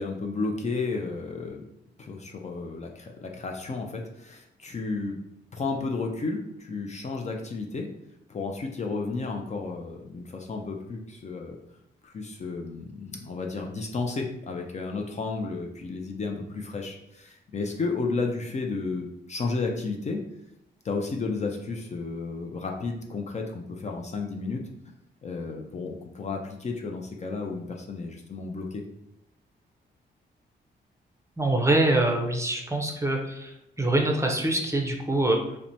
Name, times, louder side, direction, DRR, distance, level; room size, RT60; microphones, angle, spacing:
voice 1, 0.0-1.6 2.0-5.2 5.5-7.9 8.3-11.6 12.0-20.2 20.8-24.6 25.2-28.8, left 3 dB, 35° left, 1 dB, 0.4 m, -32 dB
voice 2, 31.4-35.4, right 2 dB, 15° right, 1 dB, 0.5 m, -24 dB
2.9 x 2.1 x 2.6 m, 0.81 s
cardioid pair, 60°, 20 cm